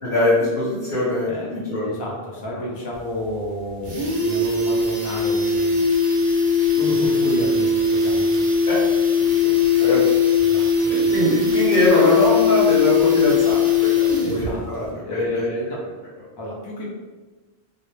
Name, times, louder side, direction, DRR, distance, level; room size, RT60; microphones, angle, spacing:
voice 1, 0.0-1.9 2.5-2.6 8.7-8.8 9.2-9.5 9.8-10.0 10.9-15.5, left 1 dB, 60° left, -8 dB, 1.0 m, -22 dB
voice 2, 1.2-5.8 6.1-6.2 6.7-8.5 10.4-11.2 14.2-15.8 16.4-16.8, left 1 dB, 40° left, -3 dB, 0.3 m, -31 dB
sound 1, 2.9-3.0 3.3-3.4 3.7-14.5 14.8-14.9, left 5 dB, 55° right, 0.7 m, -19 dB
2.3 x 2.0 x 3.1 m, 1.3 s
omnidirectional pair, 1.1 m